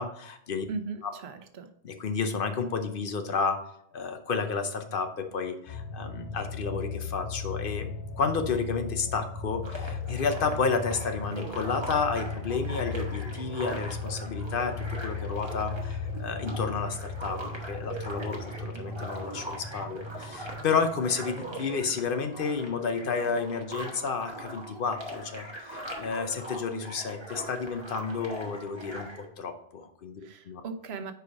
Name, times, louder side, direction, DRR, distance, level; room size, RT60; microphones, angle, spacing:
voice 1, 0.0-0.6 1.0-1.1 1.8-3.6 3.9-17.4 17.7-29.1 29.4-30.6, left 5 dB, 60° left, 7 dB, 0.8 m, -31 dB
voice 2, 0.7-1.7 30.2-31.1, right 4 dB, 75° right, 8 dB, 1.0 m, -38 dB
sound 1, 5.7-23.2 23.5-23.6, left 4 dB, 30° left, 0.9 m, -37 dB
sound 2, 9.6-29.3, right 1 dB, 25° right, 1.3 m, -41 dB
4.9 x 4.7 x 5.9 m, 0.73 s
omnidirectional pair, 1.1 m